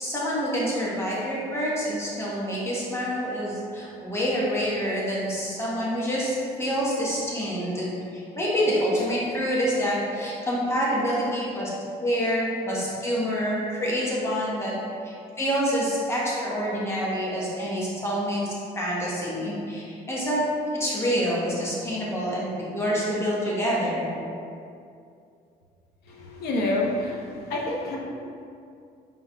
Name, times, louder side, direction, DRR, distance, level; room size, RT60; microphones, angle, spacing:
voice 1, 0.0-11.7 12.0-14.7 15.0-20.4 20.7-24.1, equal, 15° left, -6 dB, 1.1 m, -27 dB
voice 2, 26.4-27.2 27.5-28.0, left 2 dB, 70° left, -2 dB, 0.8 m, -26 dB
4.5 x 4.1 x 2.3 m, 2.5 s
cardioid pair, 110°, 17 cm